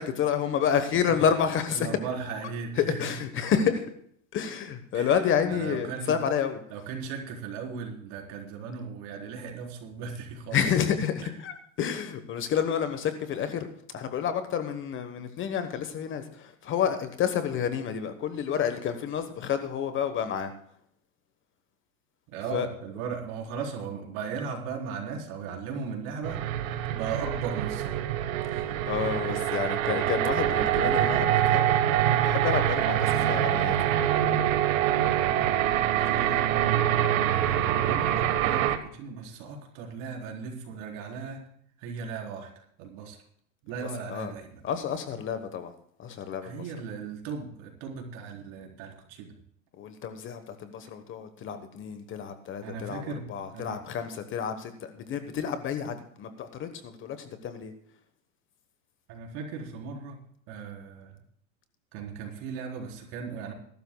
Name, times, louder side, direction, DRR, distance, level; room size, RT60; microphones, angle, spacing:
voice 1, 0.0-1.9 2.3-2.4 2.8-3.9 4.3-6.6 10.5-13.7 13.9-20.5 22.5-22.7 28.5-31.8 32.2-33.7 44.1-44.3 44.6-45.7 46.0-46.6 49.8-57.7, left 8 dB, 30° left, 9 dB, 1.2 m, -29 dB
voice 2, 1.7-3.0 4.9-5.1 5.5-6.2 6.7-10.6 11.2-11.3 22.3-28.0 33.1-33.4 34.8-36.7 37.1-41.4 41.8-43.2 43.6-44.6 46.4-49.4 52.6-53.8 59.1-60.2 60.5-61.2 61.9-63.5, right 5 dB, 50° right, 0 dB, 4.3 m, -37 dB
Jane's Slow Pan, 26.2-38.8, right 11 dB, 75° right, 1.5 m, -25 dB
21.5 x 12.5 x 2.3 m, 0.65 s
supercardioid pair, 135°, 41 cm